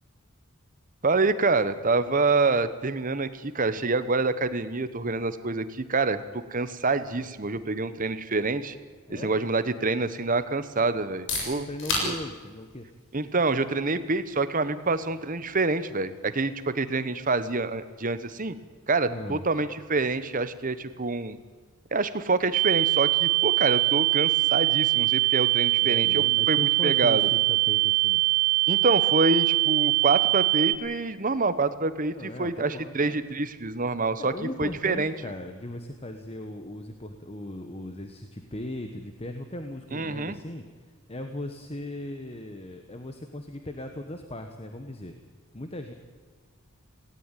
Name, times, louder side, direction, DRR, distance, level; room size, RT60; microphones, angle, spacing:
voice 1, 1.0-8.8 9.1-11.7 12.0-12.2 13.1-18.5 18.9-21.4 21.9-26.6 26.8-27.3 28.7-34.3 34.6-35.1 39.9-40.4, right 3 dB, 40° right, 12 dB, 1.1 m, -26 dB
sound 1, 11.0-26.6, left 2 dB, 60° left, 7.2 m, -41 dB
voice 2, 11.4-12.9 19.1-19.4 23.4-23.5 25.8-28.2 32.1-33.2 34.2-45.1 45.5-45.9, left 1 dB, 25° left, 6 dB, 1.2 m, -38 dB
sound 2, 22.5-30.8, right 26 dB, 85° right, 0.8 m, -23 dB
18.5 x 17.5 x 9.2 m, 1.5 s
head